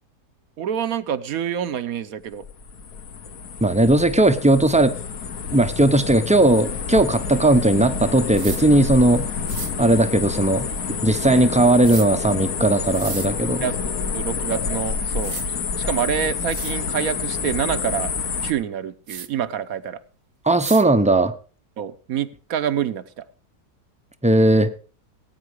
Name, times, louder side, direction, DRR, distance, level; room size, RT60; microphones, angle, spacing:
voice 1, 0.6-2.4 11.3-11.5 13.6-15.4 15.8-18.1 18.4-20.0 21.8-23.2, right 9 dB, 65° right, 13 dB, 1.3 m, -27 dB
sound 1, 2.3-18.5, left 5 dB, 65° left, 1.6 m, -28 dB
voice 2, 3.6-4.9 5.5-9.3 9.8-10.7 11.0-13.6 20.4-21.3 24.2-24.7, right 2 dB, 5° right, 10 dB, 0.5 m, -17 dB
sound 2, 8.3-8.6 9.5-9.7 11.8-12.1 12.9-13.3 14.7-14.8 15.2-15.5 16.1-16.2 16.5-16.8 19.1-19.3 20.6-20.8, right 7 dB, 50° right, 0.7 m, -33 dB
17.5 x 9.2 x 4.9 m, 0.37 s
omnidirectional pair, 1.7 m